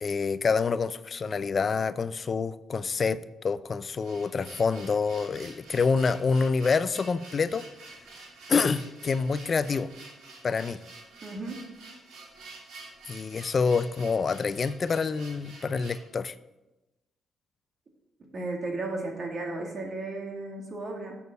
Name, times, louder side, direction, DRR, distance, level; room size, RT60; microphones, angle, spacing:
voice 1, 0.0-7.7 8.5-9.9 10.4-10.8 13.1-16.3, left 5 dB, 40° left, 15 dB, 0.4 m, -27 dB
sound 1, 4.0-16.1, right 3 dB, 75° right, 2.5 m, -48 dB
voice 2, 11.2-11.6 18.3-21.2, right 2 dB, 45° right, 2 dB, 2.2 m, -34 dB
7.0 x 6.4 x 6.8 m, 1.0 s
cardioid pair, 90°, 0 cm